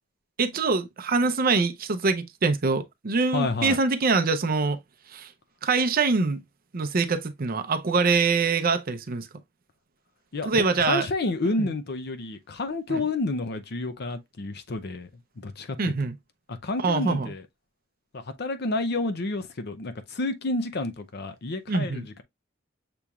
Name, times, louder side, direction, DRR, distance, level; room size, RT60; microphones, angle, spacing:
voice 1, 0.4-4.8 5.1-5.3 5.6-6.4 6.7-9.3 10.4-11.1 11.6-11.7 12.9-13.0 15.8-16.1 16.8-17.3 21.7-22.1, right 4 dB, 50° right, 0.6 m, -24 dB
voice 2, 3.3-3.8 10.3-15.1 15.4-15.8 16.5-17.4 18.1-22.2, left 2 dB, 55° left, 0.6 m, -30 dB
6.9 x 3.0 x 2.4 m
head